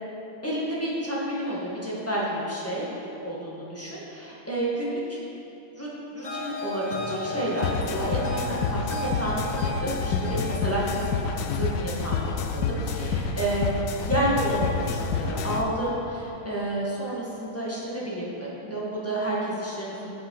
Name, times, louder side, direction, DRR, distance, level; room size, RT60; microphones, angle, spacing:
voice 1, 0.4-2.9 3.2-5.2 5.7-5.9 6.1-9.4 9.7-12.2 12.5-13.7 14.0-20.1, right 1 dB, 5° left, -7 dB, 1.6 m, -30 dB
sound 1, 6.2-13.4, left 1 dB, 35° left, 0.7 m, -36 dB
sound 2, 7.6-15.6, left 5 dB, 75° left, 0.9 m, -28 dB
8.4 x 8.0 x 5.5 m, 2.9 s
omnidirectional pair, 2.3 m